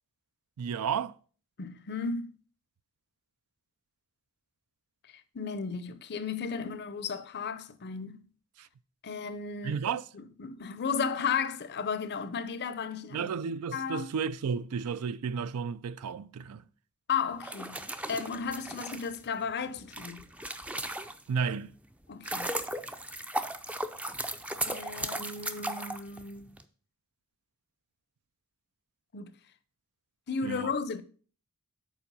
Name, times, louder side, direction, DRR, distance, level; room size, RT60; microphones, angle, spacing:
voice 1, 0.6-1.1 8.6-8.7 9.6-10.1 13.1-16.6 21.3-21.7 30.4-30.7, right 6 dB, 80° right, 0.4 m, -32 dB
voice 2, 1.6-2.3 5.3-8.2 9.0-9.8 10.1-13.3 13.7-14.1 17.1-20.2 22.1-22.5 24.6-26.5 29.1-29.3 30.3-31.0, left 5 dB, 50° left, 0.6 m, -34 dB
sound 1, 17.3-21.4 21.9-26.6, right 1 dB, 5° right, 0.4 m, -36 dB
7.2 x 4.5 x 5.4 m
head